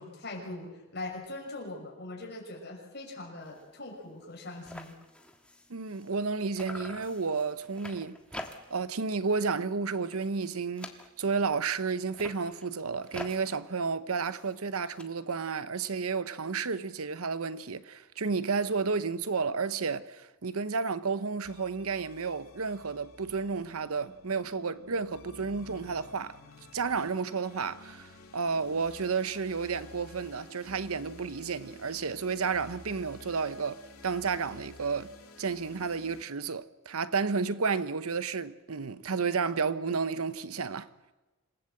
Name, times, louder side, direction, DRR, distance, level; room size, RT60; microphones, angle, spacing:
voice 1, 0.0-4.9, left 2 dB, 50° left, 6.3 m, -41 dB
sound 1, 3.4-3.7 4.0-4.1 4.3-6.3 6.6-8.9 9.3-9.6 9.9-11.5 12.0-15.0, left 1 dB, 5° left, 1.4 m, -47 dB
voice 2, 5.7-8.2 8.7-10.9 11.2-26.4 26.7-35.1 35.4-40.9, right 5 dB, 85° right, 0.9 m, -31 dB
sound 2, 21.4-36.2, left 2 dB, 80° left, 2.8 m, -52 dB
26.5 x 17.0 x 7.8 m
head